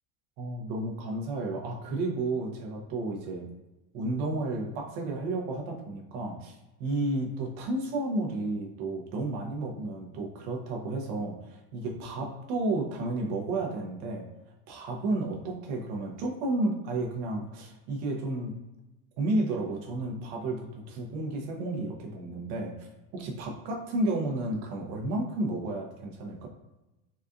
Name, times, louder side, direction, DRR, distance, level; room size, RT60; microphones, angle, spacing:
voice 1, 0.4-3.4 3.9-14.2 14.7-18.6 19.2-22.9 23.1-26.5, right 2 dB, 85° right, 0 dB, 0.9 m, -32 dB
4.1 x 2.5 x 2.4 m, 1.0 s
cardioid pair, 160°, 42 cm